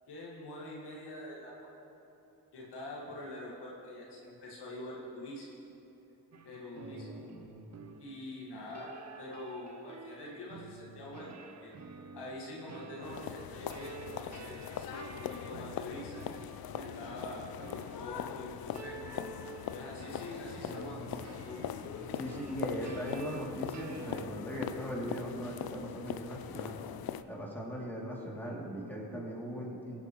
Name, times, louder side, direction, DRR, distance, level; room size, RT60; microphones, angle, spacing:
voice 1, 0.1-1.7 2.5-5.5 6.4-7.2 8.0-11.7 12.1-16.2 16.8-19.0 19.7-21.6, left 1 dB, 85° left, -4 dB, 1.9 m, -45 dB
sound 1, 6.3-24.3, right 5 dB, 40° right, 0.7 m, -50 dB
voice 2, 6.7-7.7 22.1-26.8 27.3-30.0, equal, 5° left, -4 dB, 2.7 m, -39 dB
sound 2, 13.0-27.2, left 10 dB, 65° left, 0.5 m, -41 dB
16.5 x 8.2 x 3.1 m, 2.9 s
cardioid pair, 60°, 39 cm